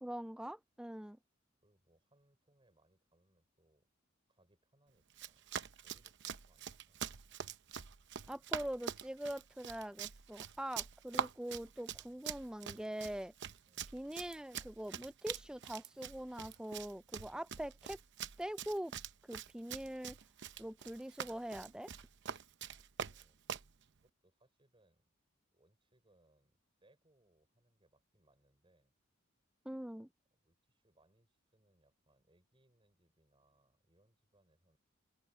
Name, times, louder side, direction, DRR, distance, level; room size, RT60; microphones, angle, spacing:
voice 1, 0.0-1.2 8.3-13.3 13.9-18.0 18.4-18.9 19.3-20.2 20.6-21.9 29.6-30.1, right 1 dB, 5° right, 0.4 m, -43 dB
voice 2, 1.6-3.9 4.3-5.5 5.8-7.0 13.7-14.0 17.3-17.5 20.6-20.7 23.0-23.4 24.0-25.3 25.5-28.9 30.3-34.8, right 1 dB, 25° right, 5.9 m, -74 dB
Run, 5.1-23.7, right 8 dB, 60° right, 0.8 m, -45 dB
open air
head